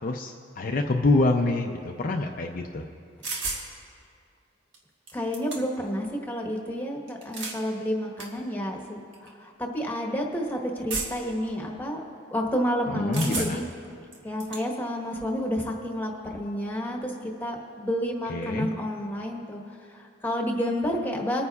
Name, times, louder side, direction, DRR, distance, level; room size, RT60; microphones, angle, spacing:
voice 1, 0.0-2.9 12.9-13.6 18.3-18.7, left 2 dB, 45° left, 2 dB, 0.5 m, -26 dB
sound 1, 3.2-3.7 4.7-4.8 5.1-5.9 7.1-7.6 8.2-8.3 9.1-9.3 10.9-11.3 13.1-13.7 14.1-14.6, right 3 dB, 70° right, 1.4 m, -33 dB
voice 2, 5.1-12.0 12.3-13.6 14.2-19.6 19.9-21.5, equal, 10° left, 1 dB, 1.2 m, -30 dB
22.0 x 9.6 x 2.4 m, 2.3 s
head